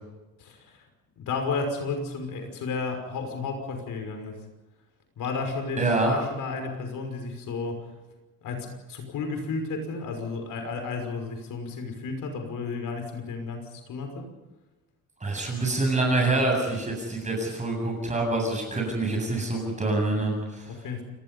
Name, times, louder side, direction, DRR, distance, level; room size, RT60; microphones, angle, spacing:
voice 1, 0.4-0.8 1.2-4.4 5.2-7.9 8.4-14.3 20.7-21.0, left 4 dB, 70° left, 5 dB, 5.9 m, -32 dB
voice 2, 5.8-6.1 15.2-20.7, right 2 dB, 20° right, 0 dB, 7.8 m, -26 dB
29.0 x 19.5 x 5.6 m, 1.1 s
cardioid pair, 115°, 34 cm